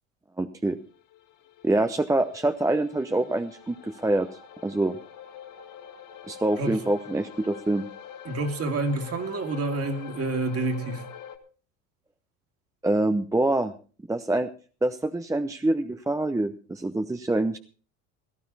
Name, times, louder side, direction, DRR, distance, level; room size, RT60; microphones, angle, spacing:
voice 1, 0.4-0.8 1.6-4.3 4.6-5.0 6.3-7.8 12.8-13.7 14.1-14.5 14.8-17.6, right 2 dB, 10° right, 0.8 m, -25 dB
sound 1, 1.0-11.4, left 9 dB, 50° left, 2.1 m, -45 dB
voice 2, 8.2-11.0, right 2 dB, 35° right, 2.4 m, -28 dB
17.0 x 12.5 x 4.2 m
supercardioid pair, 90°, 40 cm